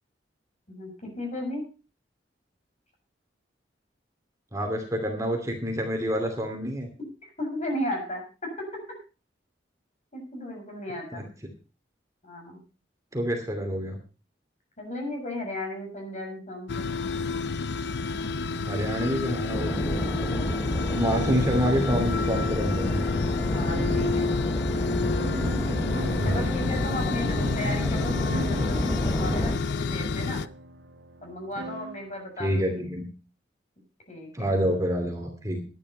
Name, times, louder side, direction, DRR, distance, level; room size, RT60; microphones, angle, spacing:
voice 1, 0.7-1.6 7.2-8.5 10.1-11.2 12.2-12.6 14.8-16.9 21.1-21.3 23.4-24.4 26.2-30.4 31.2-32.8 34.1-34.6, left 1 dB, 40° left, 1 dB, 7.3 m, -35 dB
voice 2, 4.5-6.9 11.1-11.2 13.1-14.0 18.7-20.4 20.9-23.1 26.1-26.7 32.4-33.1 34.3-35.6, equal, 20° right, 2 dB, 2.7 m, -28 dB
sound 1, 16.7-30.5, left 4 dB, 65° left, 0.6 m, -29 dB
sound 2, 19.5-29.6, equal, 15° left, 1.0 m, -29 dB
sound 3, 23.7-32.1, right 1 dB, 70° right, 1.5 m, -39 dB
12.0 x 11.0 x 5.5 m, 0.34 s
head